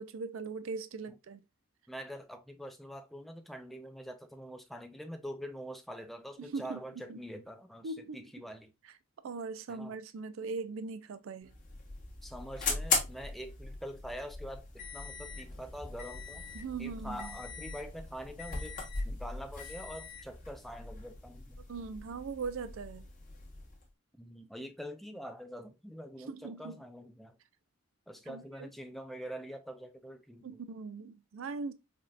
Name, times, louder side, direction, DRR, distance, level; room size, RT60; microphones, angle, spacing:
voice 1, 0.0-1.4 6.4-6.8 7.1-7.2 7.8-8.2 9.2-11.5 16.5-17.3 21.7-23.1 26.3-26.8 28.3-28.7 30.4-31.7, right 4 dB, 70° right, 0.4 m, -40 dB
voice 2, 1.9-8.7 9.7-10.0 12.2-14.7 14.9-16.4 16.8-18.8 19.0-21.6 24.2-27.4 28.1-30.5, equal, ahead, 0.4 m, -45 dB
sound 1, 11.4-23.8, left 4 dB, 40° left, 1.4 m, -39 dB
5.1 x 2.7 x 2.3 m
head